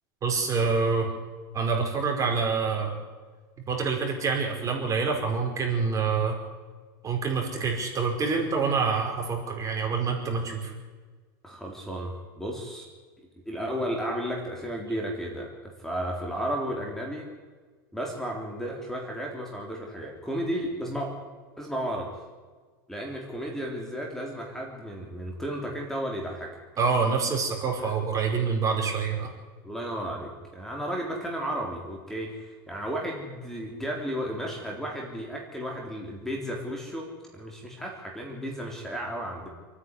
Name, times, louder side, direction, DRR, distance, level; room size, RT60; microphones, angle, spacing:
voice 1, 0.2-1.1 1.5-3.0 3.7-6.4 7.0-10.7 26.8-29.3, right 5 dB, 25° right, 2 dB, 5.1 m, -26 dB
voice 2, 11.4-12.9 13.5-17.3 17.9-21.2 21.6-22.1 22.9-26.6 29.6-39.5, equal, 5° left, -1 dB, 3.8 m, -33 dB
28.5 x 10.0 x 9.9 m, 1.4 s
supercardioid pair, 125°, 12 cm